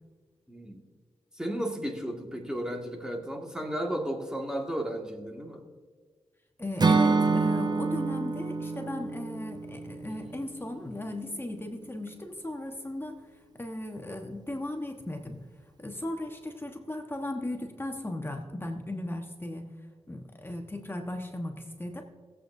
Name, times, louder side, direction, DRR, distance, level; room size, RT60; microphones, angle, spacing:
voice 1, 0.5-0.8 1.3-5.6, right 1 dB, 5° right, 1 dB, 2.0 m, -34 dB
voice 2, 6.6-13.2 13.5-15.4 15.8-19.7 20.1-22.1, left 1 dB, 20° left, 4 dB, 1.3 m, -37 dB
Acoustic guitar / Strum, 6.8-10.9, right 4 dB, 40° right, 0.8 m, -27 dB
18.5 x 8.1 x 2.7 m, 1.5 s
cardioid pair, 55°, 11 cm